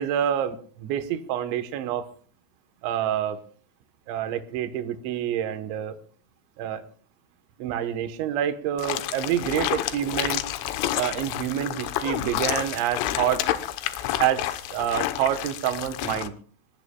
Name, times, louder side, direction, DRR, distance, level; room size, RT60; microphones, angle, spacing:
voice 1, 0.0-2.1 2.8-3.4 4.1-5.9 6.6-6.8 7.6-10.4 11.0-13.5 14.2-16.3, right 10 dB, 75° right, 10 dB, 3.3 m, -27 dB
sound 1, 8.8-16.3, left 13 dB, 80° left, 3.4 m, -29 dB
26.0 x 19.0 x 2.3 m, 0.43 s
omnidirectional pair, 5.7 m